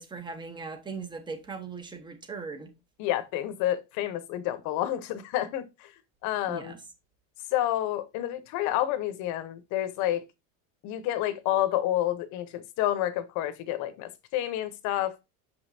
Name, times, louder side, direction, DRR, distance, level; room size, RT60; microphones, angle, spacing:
voice 1, 0.0-2.7 6.5-6.8, right 4 dB, 15° right, 0.9 m, -39 dB
voice 2, 3.0-5.9 6.2-6.7 7.5-10.2 10.8-15.3, left 13 dB, 55° left, 0.9 m, -29 dB
6.7 x 5.3 x 2.6 m
cardioid pair, 155°, 35 cm